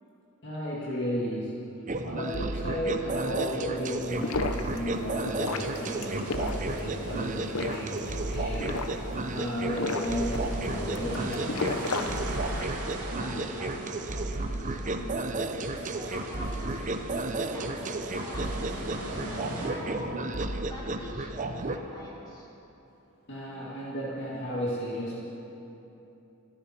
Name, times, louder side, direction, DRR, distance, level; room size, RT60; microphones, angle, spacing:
voice 1, 0.4-1.6 2.0-8.8 9.3-11.4 13.3-13.4 19.9-20.2 23.3-25.2, equal, 55° left, -5 dB, 2.1 m, -34 dB
sound 1, 1.9-21.8, right 2 dB, 35° right, 0.7 m, -33 dB
sound 2, 4.0-12.8, left 3 dB, 70° left, 0.9 m, -35 dB
sound 3, 5.4-19.7, right 1 dB, 90° right, 2.6 m, -40 dB
voice 2, 13.2-15.4 15.7-18.6 19.0-20.1 20.7-22.5, equal, 20° left, -6 dB, 3.8 m, -44 dB
27.0 x 10.5 x 4.5 m, 3.0 s
head